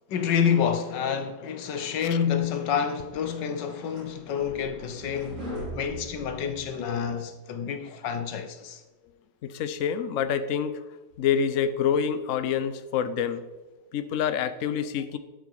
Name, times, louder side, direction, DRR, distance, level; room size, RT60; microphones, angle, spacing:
voice 1, 0.1-5.4 5.7-8.8, left 7 dB, 90° left, 1.7 m, -28 dB
sound 1, 3.4-7.0, equal, 45° right, 5.1 m, -40 dB
voice 2, 9.4-10.8 11.2-13.5 13.9-15.2, left 8 dB, 60° left, 1.0 m, -27 dB
12.0 x 8.3 x 4.8 m
omnidirectional pair, 1.8 m